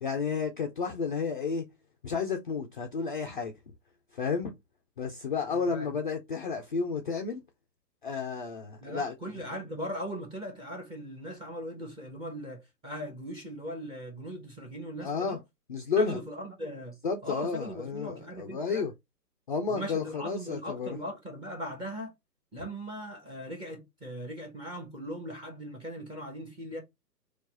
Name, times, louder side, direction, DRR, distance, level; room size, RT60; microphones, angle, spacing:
voice 1, 0.0-1.7 2.0-3.5 4.1-4.5 5.0-7.4 8.0-9.1 15.0-15.4 15.7-16.2 17.0-18.9 19.5-21.0, left 5 dB, 35° left, 0.4 m, -31 dB
voice 2, 5.5-6.0 8.8-15.4 16.0-17.0 17.2-18.9 19.7-22.1 22.5-26.8, equal, 10° right, 1.1 m, -39 dB
4.4 x 2.4 x 4.0 m
hypercardioid pair, 135°, 50 cm